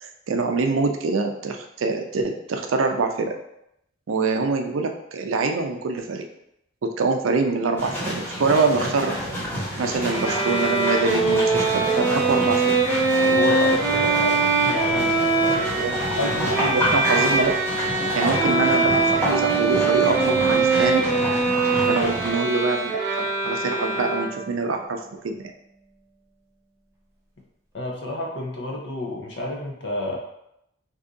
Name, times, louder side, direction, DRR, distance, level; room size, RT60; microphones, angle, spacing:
voice 1, 0.0-3.3 4.1-6.2 6.8-9.1 9.8-12.8 15.8-17.6 18.1-21.0 21.9-22.9 23.2-25.5, right 3 dB, 85° right, 4 dB, 0.4 m, -25 dB
sound 1, 7.8-22.3, equal, 10° left, 1.2 m, -29 dB
Bowed string instrument, 10.1-24.6, right 3 dB, 15° right, 0.6 m, -22 dB
voice 2, 13.2-15.9 16.2-16.8 21.7-22.1 27.7-30.2, left 1 dB, 60° left, 0 dB, 0.7 m, -30 dB
2.7 x 2.6 x 3.6 m, 0.80 s
head